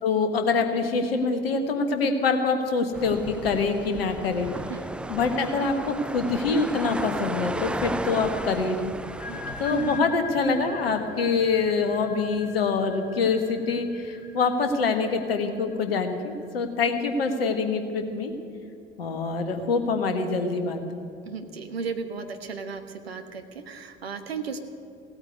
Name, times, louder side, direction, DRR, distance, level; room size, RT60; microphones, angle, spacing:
voice 1, 0.0-4.5 5.1-8.9 9.6-18.3 19.0-21.0, left 4 dB, 75° left, 6 dB, 1.5 m, -25 dB
sound 1, 2.9-10.0, right 2 dB, 5° right, 0.3 m, -34 dB
sound 2, 9.0-16.4, left 3 dB, 35° left, 3.3 m, -42 dB
voice 2, 21.2-24.6, right 5 dB, 80° right, 6 dB, 1.1 m, -35 dB
16.5 x 8.8 x 9.4 m, 2.6 s
figure-of-eight pair, 60°, 30 cm